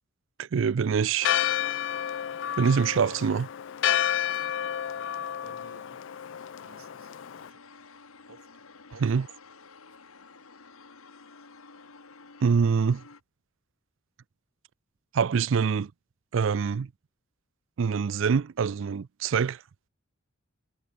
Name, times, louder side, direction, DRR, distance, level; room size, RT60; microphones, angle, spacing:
voice 1, 0.4-1.3 2.6-3.5 9.0-9.2 12.4-13.0 15.1-15.9 16.3-16.9 17.8-19.6, right 6 dB, 60° right, 0.4 m, -25 dB
Church bell, 1.2-7.5, left 10 dB, 60° left, 0.4 m, -30 dB
voice 2, 5.4-6.1 6.6-7.1 7.4-7.7 8.3-8.6 8.9-9.2 19.3-19.4, right 2 dB, 90° right, 5.5 m, -54 dB
sound 1, 5.9-13.2, left 4 dB, 85° left, 1.9 m, -52 dB
head